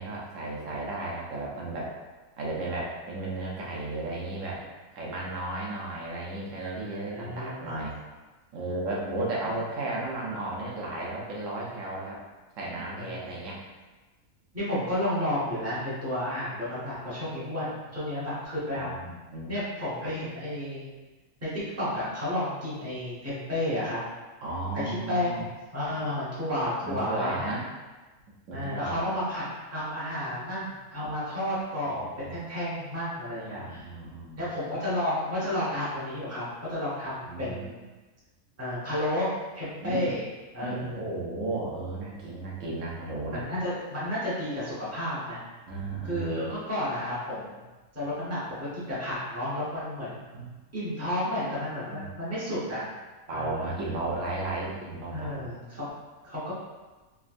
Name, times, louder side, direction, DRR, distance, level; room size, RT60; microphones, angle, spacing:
voice 1, 0.0-1.9 2.4-4.6 4.9-8.0 8.5-12.2 12.6-13.6 18.7-19.5 20.0-20.1 24.4-25.5 25.9-26.0 26.8-27.6 28.5-29.0 31.0-31.1 32.0-32.4 33.5-34.4 37.2-37.6 39.8-40.1 40.6-43.4 45.7-46.3 50.3-50.5 51.9-52.1 53.3-55.4, right 2 dB, 65° right, -4 dB, 1.0 m, -34 dB
voice 2, 6.8-7.7 12.7-13.3 14.5-18.9 19.5-20.8 21.4-24.0 24.7-27.5 28.5-29.4 29.7-33.9 34.4-37.8 38.6-40.2 40.5-41.0 43.3-45.4 46.0-47.6 47.9-50.2 50.7-52.9 53.3-53.7 55.1-55.9 56.2-56.5, left 1 dB, 15° right, -10 dB, 0.8 m, -32 dB
3.4 x 2.3 x 2.5 m, 1.2 s
omnidirectional pair, 1.5 m